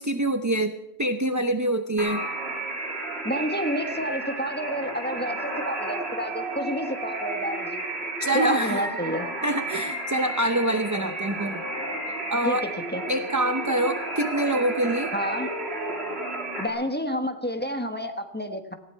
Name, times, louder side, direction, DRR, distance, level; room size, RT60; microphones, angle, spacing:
voice 1, 0.0-2.2 8.2-8.9 9.4-11.6 12.1-12.7 13.1-15.1, right 1 dB, 20° right, 8 dB, 0.6 m, -25 dB
sound 1, 2.0-16.7, right 2 dB, 55° right, 2.9 m, -32 dB
voice 2, 3.2-7.8 8.3-9.3 12.4-13.0 15.1-15.5 16.6-18.7, equal, 10° left, 5 dB, 1.3 m, -29 dB
19.0 x 15.5 x 4.6 m, 0.93 s
omnidirectional pair, 1.2 m